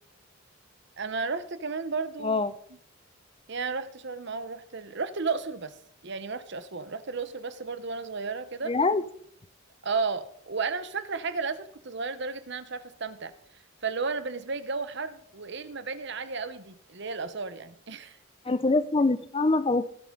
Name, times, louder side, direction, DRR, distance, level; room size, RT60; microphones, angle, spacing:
voice 1, 1.0-2.4 3.5-5.7 6.0-8.7 9.8-13.3 13.8-18.2, right 4 dB, 55° right, 1.0 m, -33 dB
voice 2, 2.2-2.5 8.7-9.0 18.4-19.9, left 3 dB, 25° left, 0.5 m, -24 dB
18.5 x 8.8 x 3.9 m
head